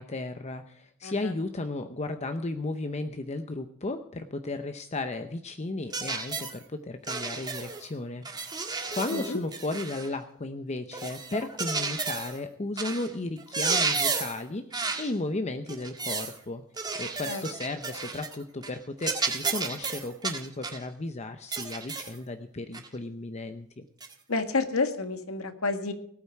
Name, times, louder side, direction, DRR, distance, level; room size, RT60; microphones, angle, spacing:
voice 1, 0.0-16.6 16.9-23.9, left 2 dB, 30° left, 8 dB, 0.7 m, -35 dB
voice 2, 1.0-1.3 9.1-9.4 17.2-17.4 24.3-25.9, left 3 dB, 80° left, 8 dB, 1.7 m, -29 dB
sound 1, 5.9-6.6 7.1-7.8 8.2-10.1 10.9-12.4 12.8-13.1 13.4-14.4 14.7-15.1 15.7-16.4 16.8-18.4 18.6-18.8 19.0-20.8 21.5-22.2 22.7-22.9 24.0-24.1, right 4 dB, 20° right, 1.5 m, -32 dB
19.0 x 8.7 x 4.7 m, 0.70 s
head